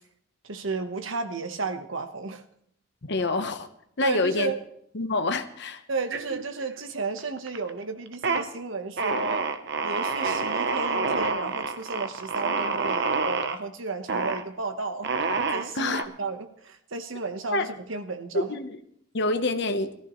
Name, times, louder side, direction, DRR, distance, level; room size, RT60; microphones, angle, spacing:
voice 1, 0.4-2.4 3.2-3.3 4.0-4.6 5.9-9.5 9.8-15.1 15.5-18.6, right 3 dB, 85° right, 1.2 m, -33 dB
voice 2, 3.0-3.7 4.0-4.5 4.9-5.8 15.7-16.1 17.5-17.7 18.3-18.8 19.1-19.9, left 2 dB, 60° left, 1.1 m, -26 dB
sound 1, 6.1-6.8 7.2-7.7 8.1-8.4 9.0-13.6 14.1-14.4 15.0-16.0, right 4 dB, 60° right, 1.0 m, -27 dB
21.0 x 14.0 x 3.2 m
head